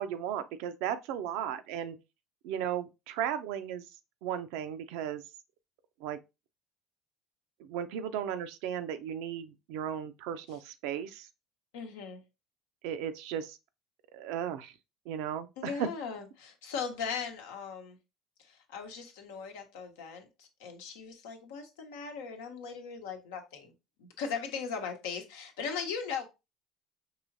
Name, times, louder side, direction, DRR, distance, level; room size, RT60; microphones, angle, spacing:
voice 1, 0.0-2.0 2.4-3.9 4.2-5.2 6.0-6.2 7.6-11.3 12.8-13.6 14.1-14.7 15.1-15.9, right 9 dB, 75° right, 0.5 m, -35 dB
voice 2, 11.7-12.2 15.6-18.0 18.4-23.7 24.0-26.3, left 6 dB, 85° left, 0.9 m, -39 dB
4.8 x 3.0 x 2.6 m
supercardioid pair, 85°, 0 cm